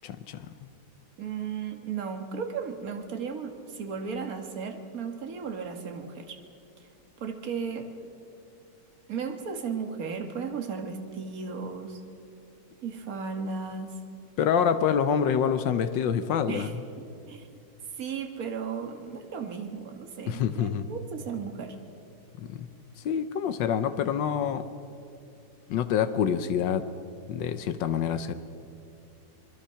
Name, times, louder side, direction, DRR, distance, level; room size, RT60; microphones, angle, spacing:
voice 1, 0.0-0.5 14.4-16.7 20.3-20.9 22.4-22.7 23.0-24.6 25.7-26.9 27.3-28.3, left 8 dB, 90° left, 10 dB, 1.6 m, -26 dB
voice 2, 1.2-6.4 7.2-7.9 9.1-12.0 12.8-14.0 16.5-16.7 17.3-17.5 18.0-21.8, right 6 dB, 50° right, 5 dB, 2.0 m, -35 dB
26.5 x 22.0 x 5.8 m, 2.6 s
omnidirectional pair, 1.9 m